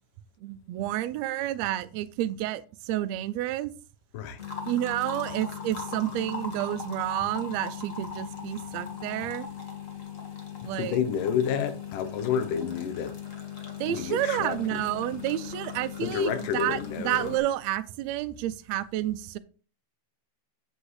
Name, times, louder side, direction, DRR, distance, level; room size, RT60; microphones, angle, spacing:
voice 1, 0.4-3.7 4.7-9.5 10.6-11.0 13.8-19.4, right 13 dB, 80° right, 1.5 m, -30 dB
sound 1, 4.4-17.4, left 7 dB, 40° left, 1.1 m, -39 dB
voice 2, 10.6-13.2 13.9-14.8 16.0-17.4, left 7 dB, 80° left, 2.6 m, -30 dB
8.2 x 7.8 x 3.2 m
omnidirectional pair, 3.7 m